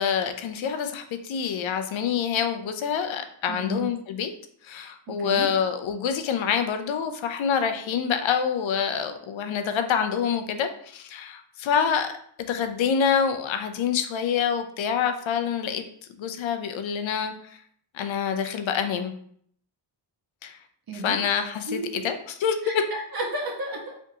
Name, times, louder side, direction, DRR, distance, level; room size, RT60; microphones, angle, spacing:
voice 1, 0.0-4.3 4.6-12.1 12.5-15.8 16.2-17.3 17.9-19.1 20.4-20.6 21.0-22.8, left 7 dB, 70° left, 7 dB, 0.6 m, -26 dB
voice 2, 3.5-3.9 5.2-5.5 20.9-21.2 21.7-22.0 22.6-24.0, right 1 dB, 45° right, 1 dB, 1.1 m, -32 dB
3.6 x 3.5 x 2.8 m, 0.65 s
cardioid pair, 90°, 49 cm